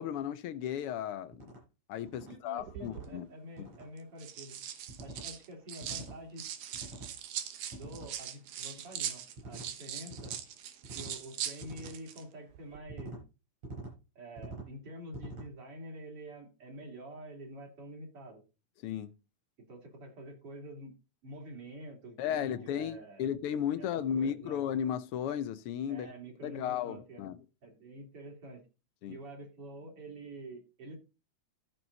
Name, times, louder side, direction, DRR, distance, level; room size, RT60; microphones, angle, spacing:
voice 1, 0.0-1.5 1.9-3.3 3.6-3.7 18.8-19.1 22.2-26.1 26.4-27.4 29.0-29.2, left 9 dB, 80° left, 1.3 m, -35 dB
sound 1, 1.3-1.6 2.1-2.3 2.8-3.1 3.6-3.9 4.9-5.3 5.8-6.2 6.7-7.1 7.7-8.1 9.4-9.7 10.1-10.4 10.8-11.2 11.6-11.9 12.9-13.2 13.6-13.9 14.4-14.7 15.1-15.5, right 2 dB, 65° right, 8.6 m, -45 dB
voice 2, 2.2-4.6 5.0-6.5 7.7-10.4 10.9-13.2 14.2-18.4 19.7-20.9 21.2-23.3 23.8-23.9 24.2-24.6 25.9-27.2 27.6-28.6 29.1-31.0, right 1 dB, 50° right, 3.7 m, -47 dB
sound 2, 2.6-3.1 4.0-6.1 6.4-12.2 12.5-12.8, right 10 dB, 85° right, 2.6 m, -41 dB
14.0 x 6.3 x 4.0 m
omnidirectional pair, 3.4 m